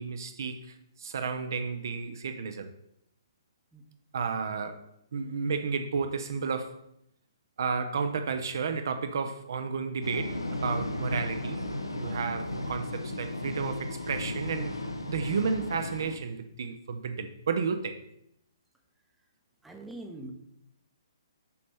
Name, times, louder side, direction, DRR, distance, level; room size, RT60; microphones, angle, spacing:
voice 1, 0.0-2.7 4.1-6.8 7.6-11.7 11.9-14.8 15.1-18.0, right 5 dB, 50° right, 0.5 m, -32 dB
sound 1, 10.0-16.2, left 1 dB, 80° left, 0.7 m, -35 dB
voice 2, 19.6-20.3, right 2 dB, 5° right, 0.7 m, -42 dB
6.8 x 5.2 x 3.4 m
figure-of-eight pair, 125°, 2 cm